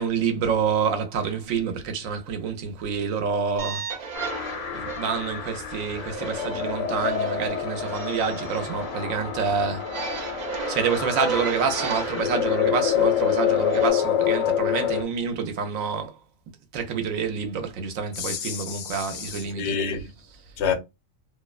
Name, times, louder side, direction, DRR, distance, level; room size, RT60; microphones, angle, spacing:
voice 1, 0.0-3.9 4.7-9.9 10.7-16.2 16.7-19.8 20.3-20.4, right 6 dB, 85° right, 1.1 m, -27 dB
sound 1, 3.6-13.9, right 5 dB, 65° right, 0.4 m, -35 dB
sound 2, 4.1-15.0, left 9 dB, 90° left, 1.0 m, -27 dB
voice 2, 18.2-20.1 20.6-20.7, left 6 dB, 60° left, 0.9 m, -29 dB
2.6 x 2.1 x 2.3 m
omnidirectional pair, 1.4 m